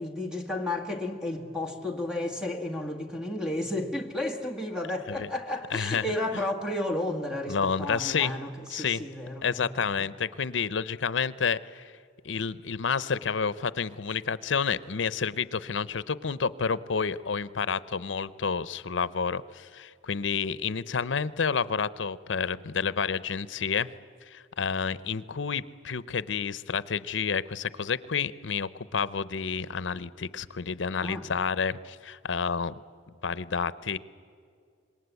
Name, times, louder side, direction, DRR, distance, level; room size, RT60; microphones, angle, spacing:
voice 1, 0.0-9.7 10.0-10.1 31.0-31.2, left 1 dB, 5° right, 3 dB, 1.8 m, -32 dB
voice 2, 5.7-6.1 6.3-6.4 7.5-8.3 8.7-9.0 9.4-12.0 12.2-23.9 24.3-32.8 33.2-34.0, left 6 dB, 75° left, 18 dB, 0.7 m, -30 dB
26.5 x 21.5 x 8.2 m, 2.3 s
head